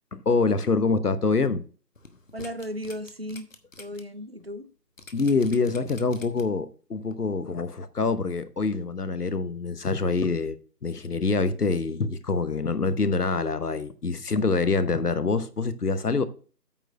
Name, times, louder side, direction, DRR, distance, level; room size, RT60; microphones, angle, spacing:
voice 1, 0.1-1.6 5.1-10.6 10.8-16.2, left 4 dB, 70° left, 1.0 m, -25 dB
sound 1, 1.9-4.0 4.4-4.5 5.0-6.6 7.1-7.2, left 3 dB, 55° left, 1.2 m, -46 dB
voice 2, 2.3-3.5 3.8-4.7, equal, 40° right, 0.5 m, -35 dB
8.9 x 4.6 x 5.9 m
figure-of-eight pair, 160°, 48 cm